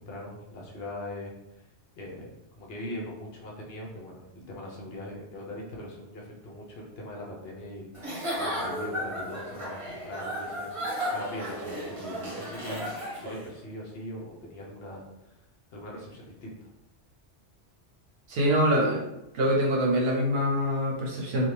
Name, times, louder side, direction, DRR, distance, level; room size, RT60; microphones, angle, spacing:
voice 1, 0.0-1.7 1.9-7.9 8.4-15.4 15.7-16.5, left 1 dB, 60° left, -2 dB, 0.8 m, -41 dB
Giggle / Chuckle chortle, 7.9-13.5, equal, 30° right, 0.7 m, -34 dB
voice 2, 18.3-19.0 19.3-21.5, equal, 65° right, -2 dB, 0.8 m, -24 dB
2.6 x 2.2 x 3.1 m, 0.90 s
omnidirectional pair, 1.2 m